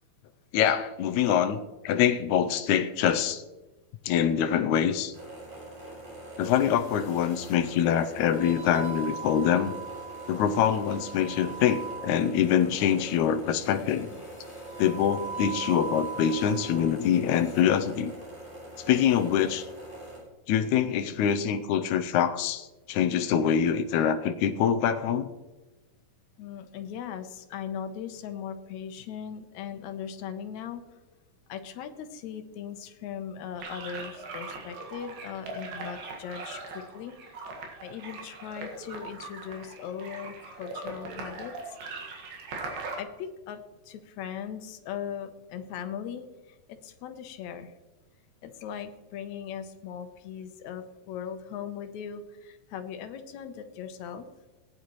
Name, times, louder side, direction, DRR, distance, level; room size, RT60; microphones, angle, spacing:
voice 1, 0.5-1.6 1.8-3.4 4.0-5.1 6.4-9.7 10.3-14.1 14.8-18.1 18.9-19.7 20.5-25.3, left 9 dB, 85° left, 8 dB, 1.7 m, -25 dB
sound 1, 5.1-20.2, right 1 dB, 55° right, 6.1 m, -44 dB
sound 2, 6.4-7.6 8.2-12.5 13.7-16.9 17.3-17.6, right 5 dB, 35° left, 1.3 m, -41 dB
voice 2, 26.4-30.8 31.5-37.1 37.8-41.5 42.9-43.6 43.9-47.7 48.4-54.3, left 8 dB, 70° left, 7 dB, 1.9 m, -39 dB
sound 3, 33.6-43.0, right 3 dB, 90° right, 3.6 m, -40 dB
19.0 x 10.0 x 3.1 m, 1.1 s
omnidirectional pair, 4.0 m